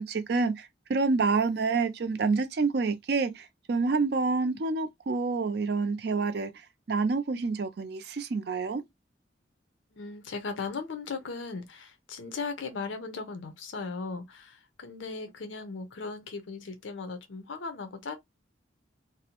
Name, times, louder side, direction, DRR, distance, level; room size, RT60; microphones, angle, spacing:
voice 1, 0.0-8.8, right 4 dB, 60° right, 0.4 m, -28 dB
voice 2, 9.9-18.2, left 4 dB, 85° left, 0.6 m, -37 dB
2.6 x 2.0 x 2.8 m
head